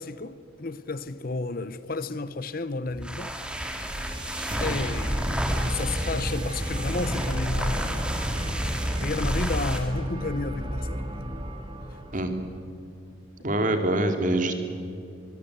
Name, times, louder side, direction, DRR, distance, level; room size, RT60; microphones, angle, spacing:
voice 1, 0.0-3.4 3.7-4.1 4.6-8.6 9.0-11.3 12.1-12.2, left 3 dB, 45° left, 0.8 m, -32 dB
sound 1, 2.9-9.9, equal, 5° right, 2.5 m, -31 dB
sound 2, 3.5-12.6, equal, 25° right, 2.0 m, -33 dB
voice 2, 13.4-14.5, right 1 dB, 40° right, 2.7 m, -24 dB
24.0 x 22.5 x 8.2 m
head